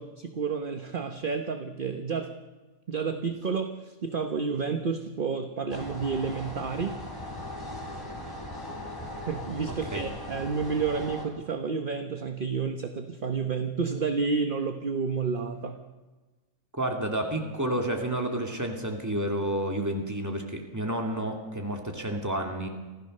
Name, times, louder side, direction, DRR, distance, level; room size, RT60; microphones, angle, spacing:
voice 1, 0.0-2.3 2.9-7.0 9.2-15.8, right 5 dB, 40° right, 7 dB, 1.1 m, -30 dB
sound 1, 5.7-11.3, left 1 dB, 15° left, 3.8 m, -39 dB
voice 2, 16.8-22.7, right 1 dB, 10° right, 2 dB, 2.6 m, -30 dB
25.5 x 15.5 x 6.6 m, 1.3 s
omnidirectional pair, 1.6 m